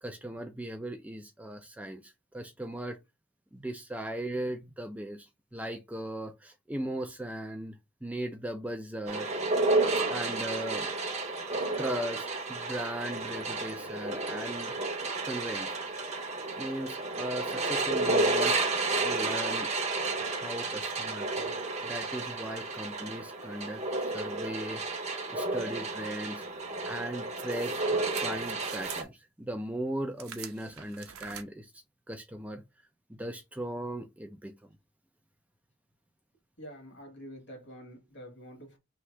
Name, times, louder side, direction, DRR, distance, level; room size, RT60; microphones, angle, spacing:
voice 1, 0.0-3.0 3.5-9.3 10.0-10.9 11.8-14.7 15.2-15.8 16.6-18.6 19.0-19.7 20.2-21.5 21.8-26.4 26.8-32.6 33.1-34.7, right 1 dB, 5° right, 0.3 m, -38 dB
sound 1, 9.1-29.0, right 2 dB, 30° right, 0.7 m, -31 dB
sound 2, 27.4-29.1 30.2-31.4, right 9 dB, 85° right, 0.7 m, -45 dB
voice 2, 36.6-38.8, equal, 55° left, 1.6 m, -47 dB
3.2 x 2.8 x 4.6 m
head